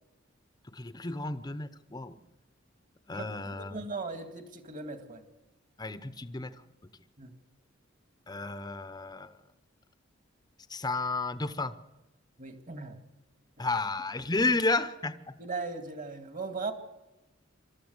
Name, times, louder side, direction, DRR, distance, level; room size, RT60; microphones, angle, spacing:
voice 1, 0.7-2.1 3.1-3.7 5.8-6.5 8.3-9.3 10.7-11.7 13.6-15.2, left 3 dB, 20° left, 12 dB, 0.8 m, -32 dB
voice 2, 3.1-5.2 7.2-7.3 12.4-13.0 15.4-16.7, right 4 dB, 45° right, 8 dB, 2.1 m, -38 dB
24.5 x 13.5 x 8.0 m, 1.0 s
head